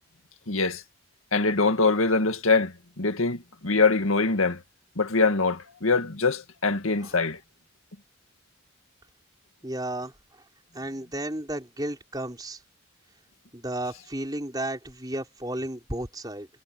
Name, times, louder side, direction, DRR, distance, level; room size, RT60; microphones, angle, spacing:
voice 1, 0.5-0.8 1.3-4.6 5.0-7.4, left 3 dB, 85° left, 2.1 m, -23 dB
voice 2, 9.6-10.1 10.7-12.6 13.5-16.5, right 1 dB, 20° right, 5.0 m, -33 dB
head